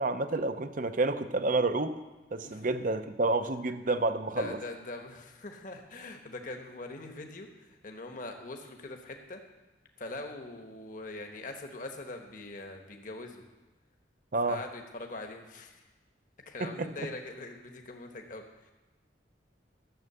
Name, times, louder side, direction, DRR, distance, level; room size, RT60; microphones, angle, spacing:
voice 1, 0.0-2.0 2.3-4.6 14.3-14.6 16.6-16.9, right 2 dB, 45° right, 10 dB, 0.7 m, -29 dB
voice 2, 4.4-9.4 10.0-13.4 14.5-15.7 16.5-18.4, left 2 dB, 45° left, 3 dB, 1.2 m, -42 dB
13.0 x 7.4 x 6.8 m, 1.2 s
head